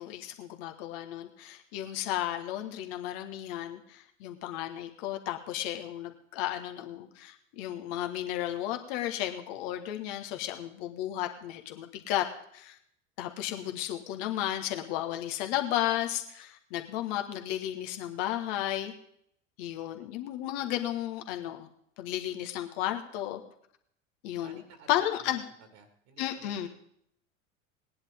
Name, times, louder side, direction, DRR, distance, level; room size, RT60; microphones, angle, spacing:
voice 1, 0.0-12.2 12.5-12.8 13.2-18.9 19.6-21.7 22.0-23.4 24.2-24.6 24.9-25.4 26.2-26.7, left 12 dB, 50° left, 5 dB, 1.7 m, -33 dB
voice 2, 24.4-25.4 25.7-26.7, right 4 dB, 50° right, 7 dB, 2.3 m, -55 dB
19.0 x 10.5 x 3.7 m, 0.69 s
figure-of-eight pair, 80°, 40 cm